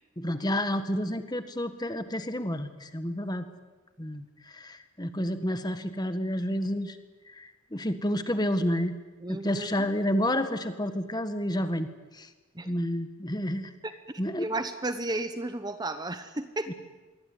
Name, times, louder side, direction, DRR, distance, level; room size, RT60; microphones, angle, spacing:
voice 1, 0.2-3.5 4.0-7.0 7.3-9.0 9.3-11.9 12.1-12.3 12.6-13.7 14.2-14.5 16.7-16.8, equal, 20° left, 10 dB, 1.6 m, -30 dB
voice 2, 9.2-9.7 12.5-12.7 14.4-16.7, right 2 dB, 20° right, 10 dB, 1.0 m, -33 dB
26.0 x 23.0 x 9.6 m, 1.2 s
head